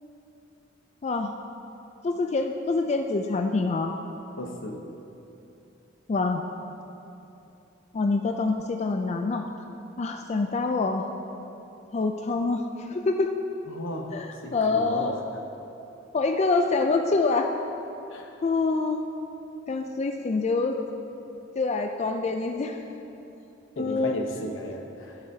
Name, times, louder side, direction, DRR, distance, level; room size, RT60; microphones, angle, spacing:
voice 1, 1.0-1.3 2.0-3.9 6.1-6.5 7.9-9.4 10.0-11.1 11.9-13.3 14.1-15.1 16.1-17.5 18.4-19.0 19.7-20.8 21.6-22.8 23.8-24.2, left 3 dB, 35° left, 5 dB, 0.4 m, -26 dB
voice 2, 4.4-4.8 13.7-14.2 14.4-15.3 18.1-18.3 23.8-25.2, left 1 dB, 85° left, 2 dB, 1.0 m, -35 dB
14.0 x 8.0 x 2.8 m, 2.9 s
head